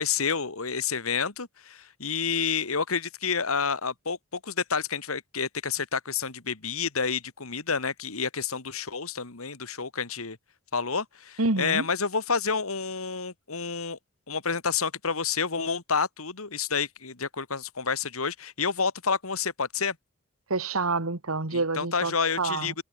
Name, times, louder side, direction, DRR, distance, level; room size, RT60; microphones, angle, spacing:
voice 1, 0.0-10.4 10.7-14.0 14.3-20.0 21.5-22.7, left 5 dB, 80° left, 2.2 m, -29 dB
voice 2, 11.4-11.9 20.5-22.7, right 3 dB, 85° right, 1.9 m, -28 dB
head